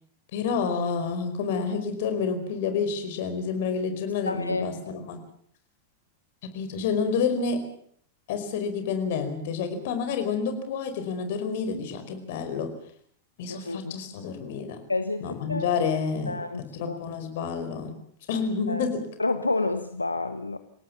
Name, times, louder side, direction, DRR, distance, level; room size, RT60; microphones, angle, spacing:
voice 1, 0.3-5.2 6.4-7.6 8.3-12.7 13.4-14.8 15.2-16.4 16.7-17.9 18.3-19.0, left 5 dB, 55° left, 9 dB, 5.0 m, -29 dB
voice 2, 4.3-4.8 13.5-13.9 14.9-15.7 16.3-16.6 16.9-17.0 18.3-18.9 19.2-20.6, left 3 dB, 90° left, 10 dB, 1.2 m, -29 dB
28.0 x 17.5 x 7.2 m, 0.64 s
figure-of-eight pair, 95°, 0 cm